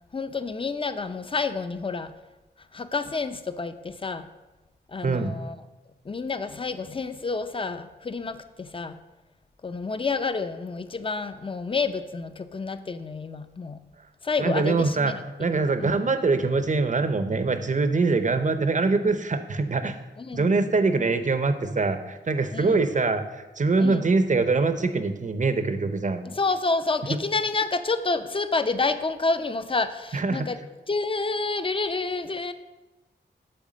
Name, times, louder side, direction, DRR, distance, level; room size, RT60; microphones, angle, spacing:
voice 1, 0.1-2.1 2.7-4.3 4.9-5.6 6.1-9.0 9.6-13.8 14.2-15.2 15.8-15.9 20.2-20.5 22.5-22.9 23.8-24.1 26.2-30.6 30.9-32.5, left 3 dB, 30° left, 11 dB, 0.5 m, -29 dB
voice 2, 5.0-5.3 14.4-15.1 15.4-19.9 20.3-26.2 30.1-30.5, right 3 dB, 40° right, 9 dB, 0.6 m, -23 dB
7.8 x 3.6 x 6.2 m, 1.1 s
cardioid pair, 60°, 19 cm